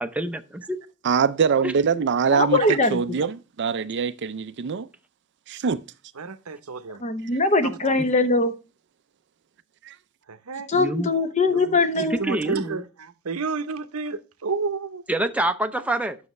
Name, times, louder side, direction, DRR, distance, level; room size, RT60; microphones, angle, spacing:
voice 1, 0.0-0.8 1.6-1.7 10.7-11.1 12.1-12.8 15.1-16.2, right 1 dB, 5° right, 0.5 m, -26 dB
voice 2, 1.0-2.6 2.9-4.9 5.5-5.8 9.9-10.0, right 6 dB, 55° right, 0.5 m, -23 dB
voice 3, 2.3-3.0 7.0-8.5 10.7-12.2, left 3 dB, 30° left, 0.8 m, -21 dB
voice 4, 6.1-7.0 7.6-8.0 10.3-10.7 11.5-15.0, right 5 dB, 80° right, 0.8 m, -31 dB
9.3 x 6.3 x 3.1 m
head